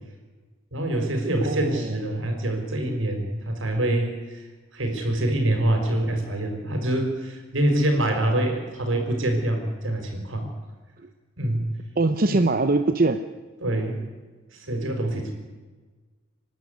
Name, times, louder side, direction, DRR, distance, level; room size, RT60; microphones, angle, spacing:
voice 1, 0.7-4.5 4.7-10.5 11.4-11.7 12.3-12.4 13.6-14.0 14.5-15.3, right 1 dB, 75° right, 3 dB, 5.6 m, -25 dB
voice 2, 1.4-2.0 12.0-13.2, right 2 dB, 45° right, 9 dB, 0.9 m, -22 dB
26.5 x 12.0 x 9.7 m, 1.3 s
head